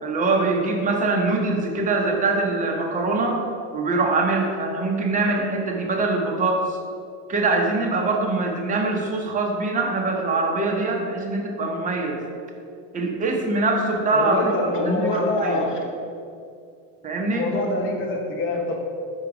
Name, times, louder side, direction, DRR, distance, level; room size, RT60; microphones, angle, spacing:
voice 1, 0.0-3.4 3.7-6.8 7.3-12.2 12.9-15.6 17.0-17.5, right 3 dB, 20° right, 1 dB, 0.8 m, -23 dB
voice 2, 14.1-15.8 17.3-18.8, left 2 dB, 30° left, 1 dB, 0.9 m, -25 dB
4.6 x 4.5 x 5.0 m, 2.4 s
supercardioid pair, 125°, 39 cm